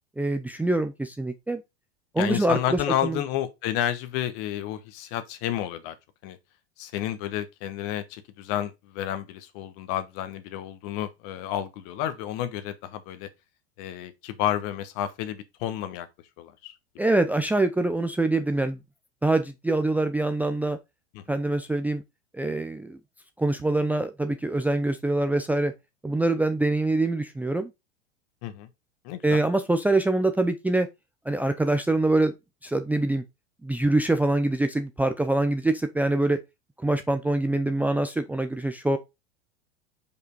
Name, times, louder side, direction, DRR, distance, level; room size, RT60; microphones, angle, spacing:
voice 1, 0.2-1.6 2.1-3.2 17.0-18.8 19.2-20.8 21.3-22.0 22.3-23.0 23.4-25.7 26.0-27.7 29.2-30.9 31.3-32.3 32.6-33.2 33.6-36.4 36.8-39.0, right 2 dB, 5° right, 0.6 m, -24 dB
voice 2, 2.2-6.0 6.2-6.4 6.8-13.3 13.8-16.1 16.4-16.7 21.1-21.2 28.4-28.7 29.0-29.4, left 11 dB, 45° left, 1.3 m, -31 dB
5.4 x 4.9 x 4.6 m
figure-of-eight pair, 90°, 33 cm